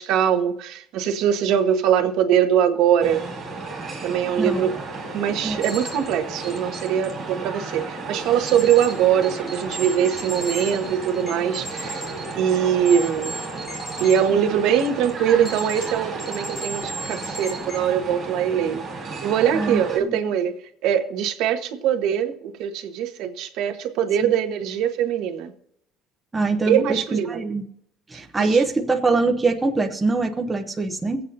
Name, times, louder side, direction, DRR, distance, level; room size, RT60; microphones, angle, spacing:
voice 1, 0.0-3.3 4.0-4.7 5.1-12.0 12.3-13.3 14.0-18.8 19.2-20.5 20.8-25.5 26.6-27.4 28.4-28.6, right 9 dB, 65° right, 7 dB, 1.2 m, -22 dB
sound 1, 3.0-20.0, right 3 dB, 30° right, 4.1 m, -34 dB
voice 2, 4.4-4.7 5.4-5.6 19.5-20.2 24.2-24.3 26.3-27.6 28.1-31.2, right 3 dB, 10° right, 3 dB, 0.7 m, -23 dB
sound 2, 5.6-6.1 6.4-7.1 8.5-8.9 9.2-14.2 14.7-15.1 15.4-15.9 16.2-17.8, right 1 dB, 25° left, 3.2 m, -35 dB
24.5 x 8.4 x 2.7 m, 0.74 s
cardioid pair, 175°, 0 cm